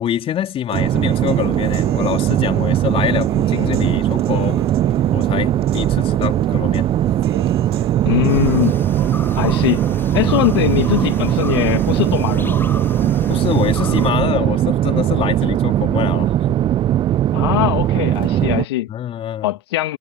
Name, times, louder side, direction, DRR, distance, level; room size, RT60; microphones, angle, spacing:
voice 1, 0.0-4.6 5.1-6.9 10.2-10.3 13.3-16.6 18.9-19.5, left 10 dB, 45° left, 3.7 m, -25 dB
sound 1, 0.7-18.6, right 12 dB, 40° right, 0.4 m, -19 dB
Human voice / Piano, 0.7-8.7, right 10 dB, 85° right, 7.2 m, -36 dB
voice 2, 8.0-8.8 9.4-9.8 10.1-12.6 17.3-18.9 19.4-20.0, left 16 dB, 75° left, 1.6 m, -20 dB
sound 2, 8.3-14.1, left 3 dB, 15° left, 2.1 m, -33 dB
hypercardioid pair, 65°, 13 cm